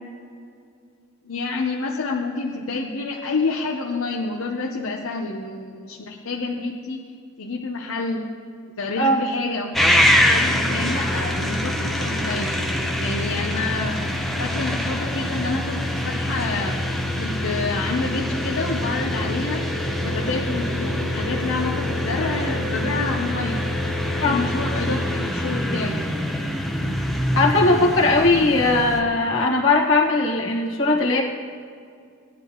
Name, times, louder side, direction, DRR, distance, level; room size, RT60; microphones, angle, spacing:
voice 1, 1.2-7.0 7.4-8.2 8.8-12.6 13.0-14.0 14.4-16.8 17.2-19.7 20.0-23.6 24.2-26.0, left 3 dB, 90° left, -1 dB, 0.9 m, -28 dB
sound 1, 9.7-29.0, left 1 dB, ahead, 0.7 m, -24 dB
voice 2, 27.3-31.2, left 2 dB, 70° left, -1 dB, 1.6 m, -19 dB
17.0 x 10.5 x 3.1 m, 2.3 s
head